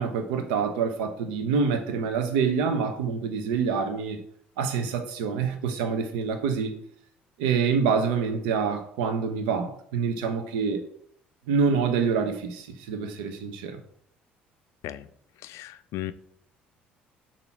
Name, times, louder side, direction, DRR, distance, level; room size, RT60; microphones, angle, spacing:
voice 1, 0.0-4.2 4.6-6.7 7.4-10.8 11.5-13.8, right 5 dB, 75° right, 7 dB, 0.9 m, -26 dB
voice 2, 15.4-16.1, left 13 dB, 65° left, 13 dB, 0.4 m, -35 dB
6.9 x 2.9 x 5.9 m, 0.64 s
hypercardioid pair, 55°, 5 cm